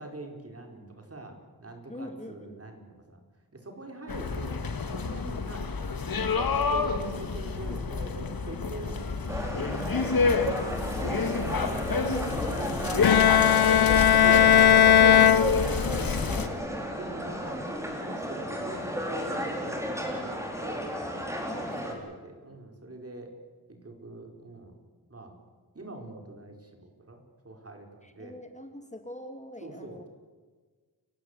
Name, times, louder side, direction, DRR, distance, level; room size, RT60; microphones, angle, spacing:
voice 1, 0.0-3.2 3.5-4.6 4.9-5.6 6.1-9.7 11.0-12.0 12.4-15.5 16.9-20.9 21.5-23.3 23.7-24.8 25.1-25.3 25.7-28.4 29.6-30.1, right 2 dB, 40° right, 3 dB, 4.6 m, -43 dB
voice 2, 1.9-2.7 16.3-16.6 21.4-21.8 28.0-30.1, left 1 dB, 20° left, 6 dB, 2.1 m, -45 dB
sound 1, 4.1-16.5, left 4 dB, 65° left, 1.9 m, -29 dB
sound 2, 9.3-21.9, equal, 10° right, 4.7 m, -34 dB
Bowed string instrument, 13.0-16.2, left 9 dB, 90° left, 0.6 m, -19 dB
29.5 x 16.0 x 8.2 m, 1.4 s
wide cardioid pair, 90°, 37 cm